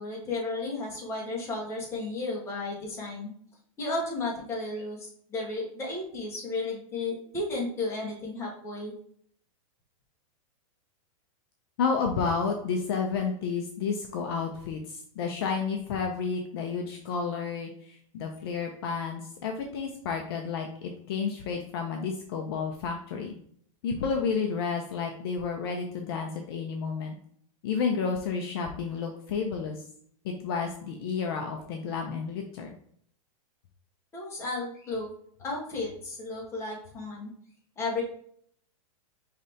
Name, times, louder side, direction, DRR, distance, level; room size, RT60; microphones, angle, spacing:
voice 1, 0.0-3.3 3.8-9.0 34.1-35.1 35.4-37.3 37.8-38.0, left 2 dB, 15° left, -3 dB, 1.1 m, -33 dB
voice 2, 11.8-23.4 23.8-27.1 27.6-29.8 30.2-32.8, left 5 dB, 45° left, 3 dB, 0.5 m, -31 dB
5.1 x 3.2 x 2.7 m, 0.63 s
supercardioid pair, 170°, 18 cm